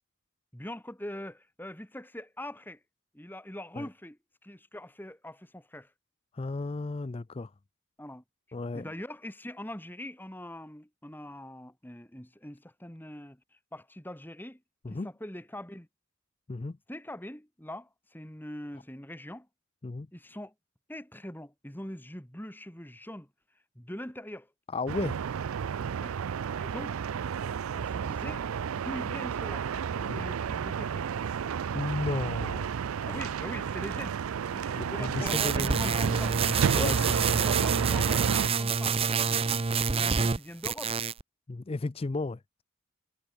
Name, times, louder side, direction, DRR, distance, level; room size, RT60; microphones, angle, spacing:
voice 1, 0.5-2.8 3.1-5.9 8.0-8.2 8.7-14.6 14.9-15.9 16.9-19.5 20.1-20.5 20.9-23.3 23.7-24.5 26.0-26.2 26.6-27.0 27.7-28.5 28.7-31.1 33.0-34.2 34.5-36.4 36.7-37.0 37.4-41.0, left 1 dB, 10° left, 2.3 m, -42 dB
voice 2, 6.3-7.5 8.5-8.9 14.8-15.1 16.5-16.8 19.8-20.1 24.7-25.2 30.1-30.3 31.7-32.7 34.8-35.9 36.8-37.4 41.5-42.6, left 3 dB, 25° left, 0.4 m, -34 dB
sound 1, 24.9-38.5, right 7 dB, 80° right, 0.4 m, -31 dB
sound 2, 35.3-40.4 40.6-41.2, right 5 dB, 25° right, 0.6 m, -28 dB
head